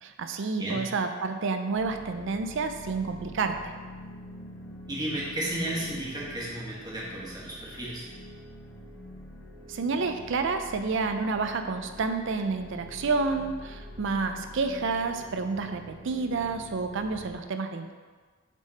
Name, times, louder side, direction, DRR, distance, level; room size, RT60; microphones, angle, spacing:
voice 1, 0.0-3.7 9.7-17.9, right 4 dB, 65° right, 7 dB, 0.5 m, -29 dB
sound 1, 1.7-17.3, left 1 dB, 60° left, 1.2 m, -46 dB
voice 2, 4.9-8.0, right 1 dB, 20° right, -6 dB, 1.4 m, -33 dB
7.4 x 3.6 x 4.1 m, 1.4 s
head